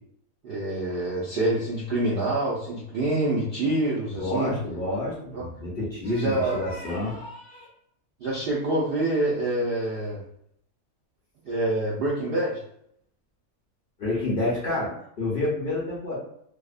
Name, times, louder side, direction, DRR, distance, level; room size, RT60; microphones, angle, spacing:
voice 1, 0.4-4.5 5.3-5.4 6.1-6.6 8.2-10.2 11.4-12.6, right 2 dB, 90° right, -5 dB, 0.4 m, -26 dB
voice 2, 4.2-7.7 14.0-16.2, left 2 dB, 50° left, -6 dB, 0.7 m, -29 dB
2.7 x 2.0 x 2.4 m, 0.72 s
omnidirectional pair, 1.6 m